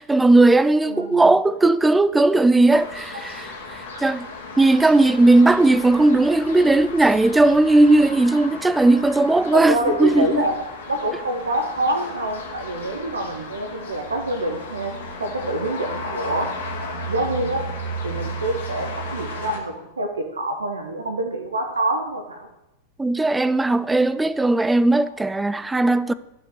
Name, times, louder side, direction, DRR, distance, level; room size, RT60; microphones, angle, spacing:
voice 1, 0.0-4.3 4.6-10.4 23.0-26.1, right 2 dB, 10° right, 0.4 m, -17 dB
voice 2, 0.8-1.3 9.5-10.6 10.9-14.9 15.2-16.5 17.1-17.6 18.0-22.5, right 1 dB, 75° right, 1.0 m, -26 dB
sound 1, 2.7-19.6, left 1 dB, 65° left, 2.1 m, -34 dB
12.0 x 5.8 x 6.4 m
figure-of-eight pair, 90°, 0 cm